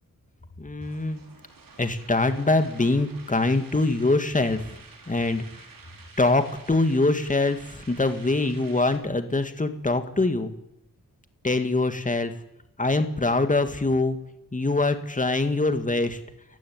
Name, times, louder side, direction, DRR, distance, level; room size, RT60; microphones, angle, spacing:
voice 1, 0.6-1.2 1.8-4.6 5.1-5.5 6.2-10.5 11.4-12.3 12.8-14.2 14.5-16.2, left 2 dB, 25° left, 8 dB, 2.2 m, -23 dB
sound 1, 0.8-9.0, right 4 dB, 85° right, 4.8 m, -50 dB
29.5 x 15.0 x 9.7 m, 0.86 s
wide cardioid pair, 120°, 33 cm